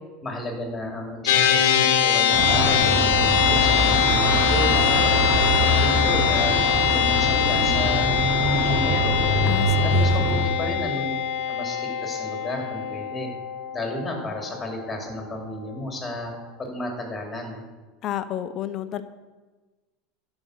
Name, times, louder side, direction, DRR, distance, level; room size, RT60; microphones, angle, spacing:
voice 1, 0.2-5.2 5.6-6.6 6.9-8.1 8.4-9.2 9.8-11.1 11.5-13.3 13.7-16.3 16.6-17.6, left 1 dB, 15° left, 2 dB, 2.7 m, -32 dB
sound 1, 1.3-14.8, left 9 dB, 85° left, 1.1 m, -23 dB
Car passing by / Traffic noise roadway noise / Engine, 2.3-10.4, right 1 dB, 55° right, 3.3 m, -23 dB
voice 2, 9.5-10.2 18.0-19.0, left 11 dB, 45° left, 11 dB, 0.7 m, -31 dB
11.5 x 5.4 x 6.4 m, 1.3 s
supercardioid pair, 120°, 0 cm